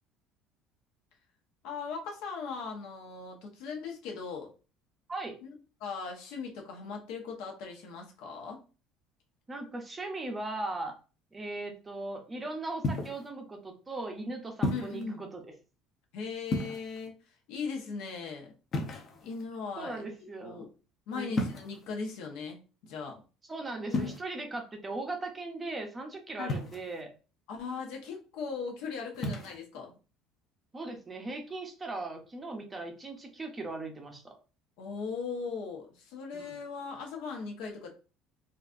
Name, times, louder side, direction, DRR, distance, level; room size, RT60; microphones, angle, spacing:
voice 1, 1.6-4.5 5.4-5.5 5.8-8.6 14.7-15.2 16.1-17.2 17.5-18.5 19.2-20.0 20.4-20.7 21.1-23.2 26.4-26.6 27.5-29.9 34.8-37.9, left 5 dB, 75° left, 1 dB, 0.9 m, -39 dB
voice 2, 9.5-10.9 11.3-15.4 19.8-20.7 21.1-21.3 23.5-27.1 30.7-34.3 36.3-36.6, right 2 dB, 15° right, 3 dB, 0.6 m, -38 dB
sound 1, 12.8-13.3 14.6-15.0 16.5-17.1 18.7-19.4 21.3-21.9 23.9-24.2 26.5-27.0 29.1-29.6, left 2 dB, 30° left, 0.6 m, -32 dB
4.0 x 2.4 x 2.5 m, 0.34 s
cardioid pair, 165°, 0 cm